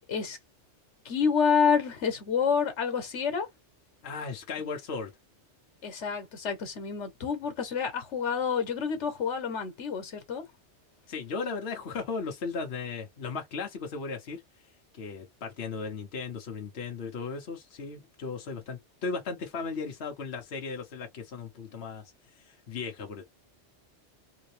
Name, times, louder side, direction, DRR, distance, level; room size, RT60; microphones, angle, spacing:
voice 1, 1.0-3.5 5.8-10.4, left 6 dB, 90° left, 1.4 m, -28 dB
voice 2, 4.0-5.1 11.1-14.4 14.9-22.0 22.4-23.2, left 4 dB, 65° left, 1.1 m, -36 dB
3.3 x 2.8 x 3.2 m
omnidirectional pair, 1.2 m